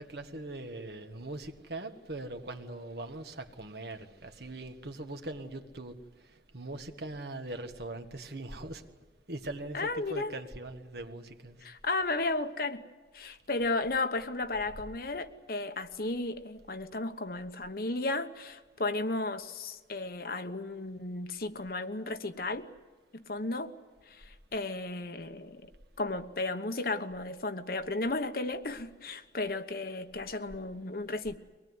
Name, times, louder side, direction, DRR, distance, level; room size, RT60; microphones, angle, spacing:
voice 1, 0.0-5.9 6.5-8.8 9.3-11.6, right 2 dB, 65° right, 6 dB, 1.6 m, -41 dB
voice 2, 9.7-10.3 11.6-12.8 13.1-22.7 23.1-23.7 24.1-25.7 26.0-31.4, left 2 dB, 55° left, 9 dB, 1.1 m, -34 dB
24.0 x 19.5 x 9.6 m, 1.3 s
head